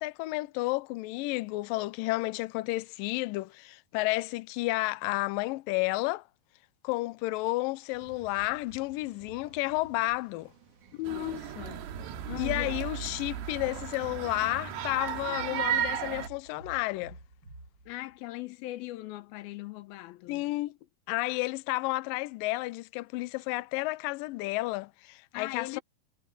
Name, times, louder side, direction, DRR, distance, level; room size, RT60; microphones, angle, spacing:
voice 1, 0.0-6.2 6.8-10.5 12.4-17.2 20.3-20.7 21.1-25.8, left 21 dB, 90° left, 2.0 m, -31 dB
sound 1, 7.9-15.0, right 3 dB, 50° right, 3.6 m, -54 dB
voice 2, 10.9-11.9 12.3-12.8 17.9-20.5 25.3-25.8, left 18 dB, 75° left, 2.6 m, -39 dB
sound 2, 11.0-16.3, right 9 dB, 85° right, 3.8 m, -34 dB
sound 3, 14.7-18.2, right 2 dB, 25° right, 7.9 m, -50 dB
omnidirectional pair, 4.7 m